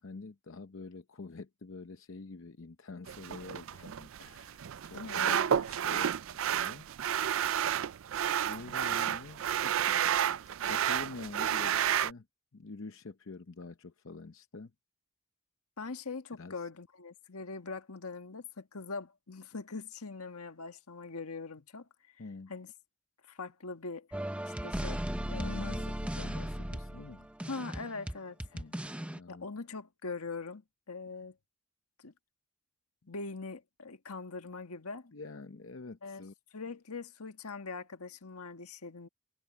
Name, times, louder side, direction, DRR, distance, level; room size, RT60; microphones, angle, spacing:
voice 1, 0.0-5.4 5.8-6.1 6.4-7.3 8.4-12.3 12.5-14.7 16.4-16.7 22.2-22.5 25.3-27.3 28.5-28.8 29.1-29.5 35.0-36.3, left 3 dB, 60° left, 0.7 m, -46 dB
sound 1, 3.1-12.1, right 9 dB, 65° right, 0.4 m, -31 dB
voice 2, 4.9-5.7 15.8-22.2 22.5-22.7 23.2-24.1 24.4-25.0 25.3-25.8 27.5-28.4 29.3-31.4 32.0-32.1 33.1-35.1 36.0-36.2 36.5-39.1, left 4 dB, 90° left, 1.6 m, -42 dB
sound 2, 24.1-29.2, right 1 dB, 5° right, 0.6 m, -37 dB
head